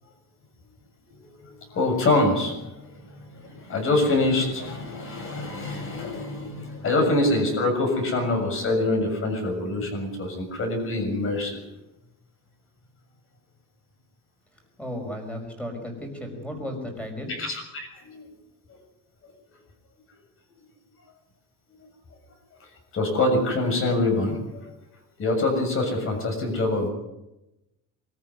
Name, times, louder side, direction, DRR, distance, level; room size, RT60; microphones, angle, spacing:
voice 1, 1.7-11.6 17.3-18.2 22.9-24.6 25.2-26.9, left 2 dB, 40° left, 3 dB, 6.9 m, -25 dB
voice 2, 14.8-17.3, left 1 dB, 5° left, 4 dB, 5.4 m, -34 dB
23.5 x 14.0 x 9.6 m, 0.95 s
cardioid pair, 155°, 34 cm